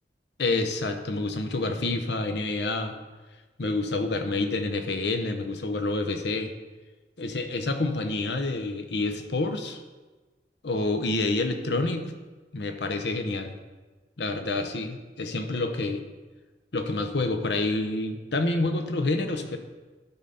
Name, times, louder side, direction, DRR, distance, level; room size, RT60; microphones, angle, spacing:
voice 1, 0.4-2.9 3.6-6.5 7.2-9.8 10.6-12.1 12.5-13.6 14.2-16.0 16.7-19.6, left 2 dB, 75° left, 6 dB, 0.9 m, -28 dB
12.0 x 4.0 x 5.7 m, 1.3 s
head